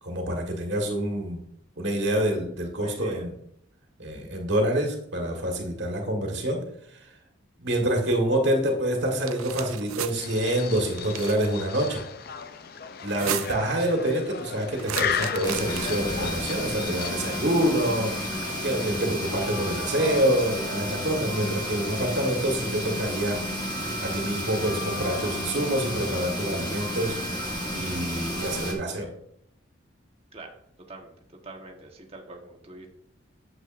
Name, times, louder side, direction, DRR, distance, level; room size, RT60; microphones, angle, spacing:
voice 1, 0.0-1.4 1.8-3.4 4.0-6.6 6.9-7.0 7.6-12.0 13.0-18.4 18.6-23.4 24.0-27.2 27.4-29.1, right 1 dB, 55° right, 1 dB, 1.7 m, -27 dB
voice 2, 2.8-3.3 13.5-13.8 30.3-30.5 30.9-31.1 31.4-32.9, right 2 dB, 30° right, 1 dB, 1.3 m, -44 dB
sound 1, 9.1-10.1 10.9-11.5 13.0-13.7 14.8-16.1, right 10 dB, 90° right, 0.5 m, -34 dB
sound 2, 10.1-20.5, left 7 dB, 45° left, 0.4 m, -36 dB
sound 3, 15.4-28.7, equal, 20° left, 1.3 m, -32 dB
8.9 x 7.7 x 2.6 m, 0.73 s
head